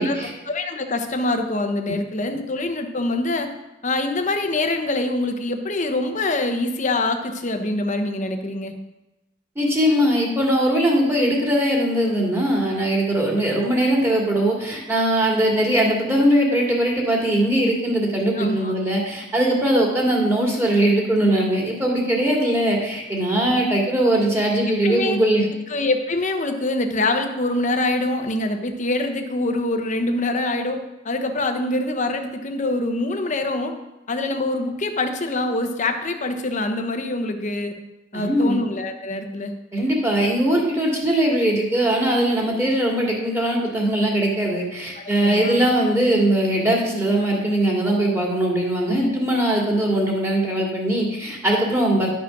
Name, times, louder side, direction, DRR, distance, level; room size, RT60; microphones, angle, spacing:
voice 1, 0.5-3.5 3.8-8.7 18.3-18.7 23.5-23.6 24.7-25.2 25.7-33.7 34.1-37.7 38.1-39.5 44.9-45.6 48.9-49.1, left 2 dB, 40° left, 6 dB, 1.0 m, -25 dB
voice 2, 9.6-25.4 38.1-38.6 39.7-52.1, right 1 dB, 15° right, -2 dB, 2.4 m, -20 dB
11.5 x 6.0 x 6.0 m, 0.99 s
head